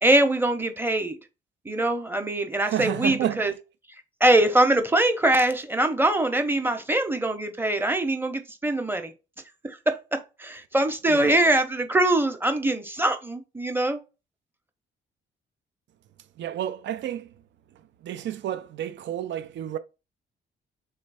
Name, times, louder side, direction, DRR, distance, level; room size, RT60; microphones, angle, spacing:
voice 1, 0.0-1.2 1.6-3.5 4.2-9.1 9.6-14.0, right 1 dB, 10° right, 0.8 m, -23 dB
voice 2, 2.6-3.5 11.1-11.3 16.4-17.3 18.0-19.8, right 11 dB, 65° right, 0.5 m, -30 dB
3.2 x 3.2 x 4.7 m
cardioid pair, 90°, 20 cm